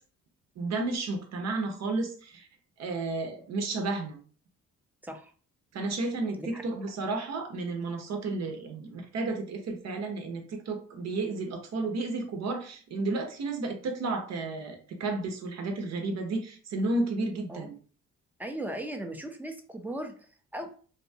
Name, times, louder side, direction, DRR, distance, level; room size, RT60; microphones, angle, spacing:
voice 1, 0.6-2.5 2.8-4.2 5.7-17.7, right 3 dB, 60° right, 4 dB, 0.8 m, -32 dB
voice 2, 18.4-20.7, right 1 dB, 5° right, 4 dB, 0.5 m, -38 dB
2.7 x 2.2 x 2.7 m, 0.41 s
cardioid pair, 90°, 30 cm